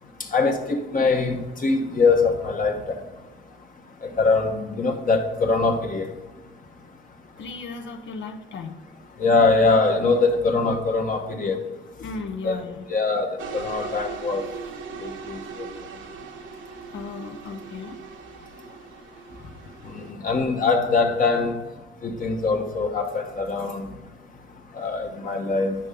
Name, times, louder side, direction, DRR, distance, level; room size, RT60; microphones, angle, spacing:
voice 1, 0.3-2.8 4.2-6.1 9.2-11.6 12.4-12.5 12.9-13.3 13.5-14.4 15.0-15.4 20.2-21.6 22.0-23.9 24.8-25.8, left 4 dB, 45° left, 2 dB, 1.1 m, -22 dB
voice 2, 7.4-8.8 12.0-12.9 16.9-18.0, left 4 dB, 70° left, 4 dB, 0.8 m, -35 dB
sound 1, 13.4-20.1, right 6 dB, 75° right, 0.9 m, -39 dB
9.8 x 5.4 x 3.8 m, 1.1 s
cardioid pair, 90°, 20 cm